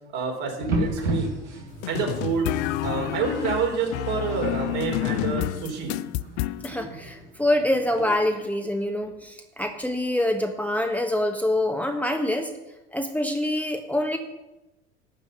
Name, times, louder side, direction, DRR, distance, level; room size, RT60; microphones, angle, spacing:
voice 1, 0.1-1.3 1.9-2.5 2.8-5.9, right 5 dB, 60° right, 1 dB, 3.9 m, -28 dB
sound 1, 0.6-8.1, right 1 dB, 85° right, 2.4 m, -34 dB
sound 2, 1.8-6.7, left 18 dB, 60° left, 0.5 m, -29 dB
voice 2, 6.6-12.5 12.9-14.2, left 1 dB, 5° left, 4 dB, 1.3 m, -25 dB
12.0 x 6.2 x 9.3 m, 0.99 s
hypercardioid pair, 70°, 35 cm